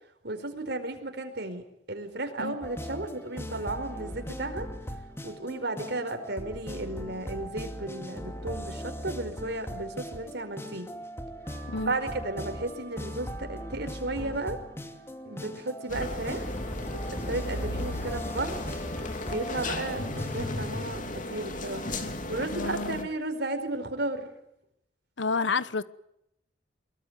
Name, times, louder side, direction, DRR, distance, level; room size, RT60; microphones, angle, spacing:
voice 1, 0.2-4.7 5.2-10.9 11.8-14.6 15.2-16.5 16.9-18.6 19.3-21.9 22.3-24.3, right 2 dB, 60° right, 4.6 m, -34 dB
sound 1, 2.6-20.4, equal, 15° left, 2.4 m, -39 dB
sound 2, 11.4-20.5, right 6 dB, 25° right, 7.0 m, -56 dB
sound 3, 15.9-23.0, left 2 dB, 45° left, 3.0 m, -35 dB
voice 2, 22.5-23.1 25.2-25.8, left 4 dB, 70° left, 1.1 m, -29 dB
24.5 x 22.5 x 9.4 m
head